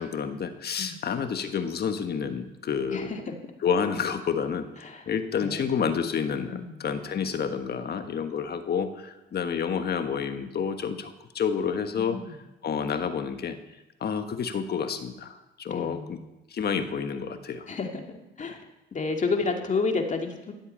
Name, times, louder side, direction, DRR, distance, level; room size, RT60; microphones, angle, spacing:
voice 1, 0.0-3.1 3.6-12.2 12.6-13.6 14.0-16.2 16.5-17.6, left 6 dB, 55° left, 8 dB, 1.4 m, -29 dB
voice 2, 2.9-3.2 4.8-5.0 5.3-5.7 6.5-6.8 12.0-12.3 15.7-16.3 17.7-18.6 18.9-20.5, left 4 dB, 40° left, 3 dB, 2.4 m, -30 dB
13.5 x 8.2 x 8.7 m, 0.98 s
cardioid pair, 90°, 20 cm